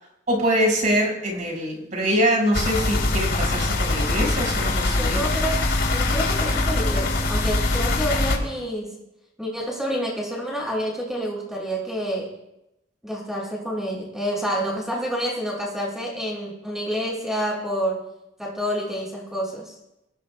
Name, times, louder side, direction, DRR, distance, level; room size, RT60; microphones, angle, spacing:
voice 1, 0.3-5.2, equal, 45° right, -1 dB, 5.6 m, -24 dB
sound 1, 2.5-8.4, left 2 dB, 65° left, 3.7 m, -23 dB
voice 2, 5.0-5.6 5.9-8.9 9.4-12.3 13.0-18.0 18.4-19.7, equal, 5° right, -3 dB, 6.4 m, -28 dB
25.5 x 18.5 x 2.3 m, 0.89 s
head